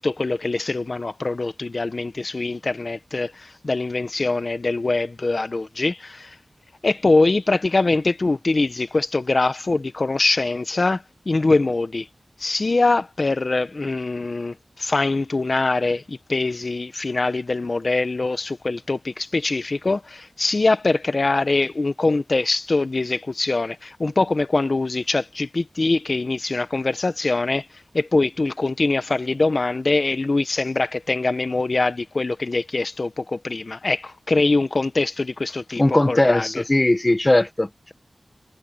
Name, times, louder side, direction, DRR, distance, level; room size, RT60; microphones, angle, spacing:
voice 1, 0.0-6.4 6.8-12.1 12.4-36.6, left 3 dB, 50° left, 1.3 m, -23 dB
voice 2, 35.8-37.9, left 1 dB, 25° left, 1.3 m, -19 dB
wide cardioid pair, 60°, 0 cm